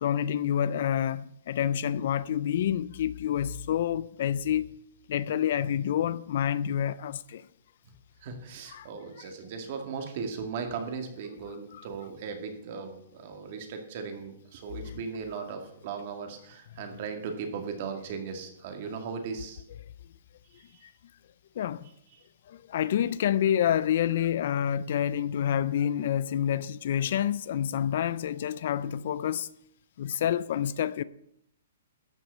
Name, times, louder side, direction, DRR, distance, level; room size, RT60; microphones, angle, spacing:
voice 1, 0.0-4.7 5.1-7.4 8.7-8.9 9.2-9.3 11.7-11.9 15.4-15.5 20.8-20.9 21.6-21.9 22.5-29.5 30.0-31.0, left 10 dB, 45° left, 0.4 m, -28 dB
voice 2, 8.2-19.6 20.5-20.9, right 5 dB, 35° right, 2.1 m, -37 dB
13.0 x 6.2 x 8.2 m
hypercardioid pair, 170°, 0 cm